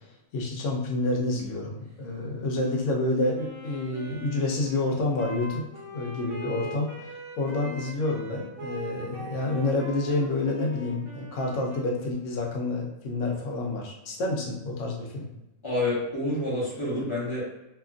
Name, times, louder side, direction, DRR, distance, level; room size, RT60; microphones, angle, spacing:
voice 1, 0.3-15.3, left 2 dB, 70° left, -1 dB, 1.0 m, -29 dB
Wind instrument woodwind instrument, 3.3-12.3, right 1 dB, 70° right, 1.0 m, -42 dB
voice 2, 15.6-17.4, left 1 dB, 25° left, -8 dB, 0.8 m, -28 dB
2.8 x 2.4 x 2.4 m, 0.93 s
omnidirectional pair, 1.4 m